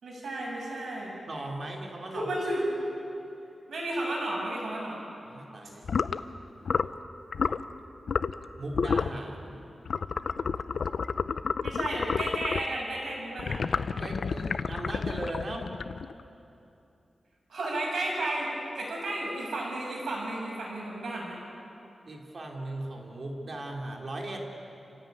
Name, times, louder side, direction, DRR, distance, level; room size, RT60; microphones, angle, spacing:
voice 1, 0.0-1.2 2.1-2.6 3.7-5.1 11.6-13.7 17.5-18.5 18.8-21.4, right 1 dB, 85° right, -2 dB, 7.0 m, -33 dB
voice 2, 1.2-2.3 5.2-5.9 8.5-9.6 14.0-15.7 22.0-24.5, right 1 dB, 50° right, 1 dB, 3.3 m, -38 dB
sound 1, 5.8-6.2 6.6-7.0 7.3-7.6 8.1-8.4 8.7-9.2 9.9-12.7 13.4-16.2, left 5 dB, 70° left, 0.7 m, -30 dB
29.5 x 16.0 x 9.3 m, 2.8 s
wide cardioid pair, 110°, 0 cm